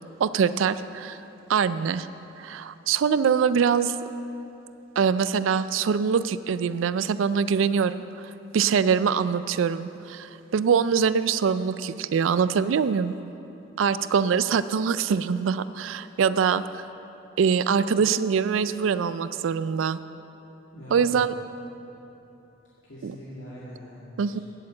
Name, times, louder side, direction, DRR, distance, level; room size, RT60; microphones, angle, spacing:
voice 1, 0.2-1.2 1.5-2.1 2.4-4.0 5.0-13.2 13.8-16.8 17.4-20.0 20.9-21.4 23.0-23.1 24.2-24.4, right 6 dB, 90° right, 14 dB, 0.4 m, -24 dB
voice 2, 20.7-21.2 22.8-24.4, equal, 80° left, -9 dB, 2.1 m, -43 dB
9.9 x 8.3 x 7.6 m, 3.0 s
head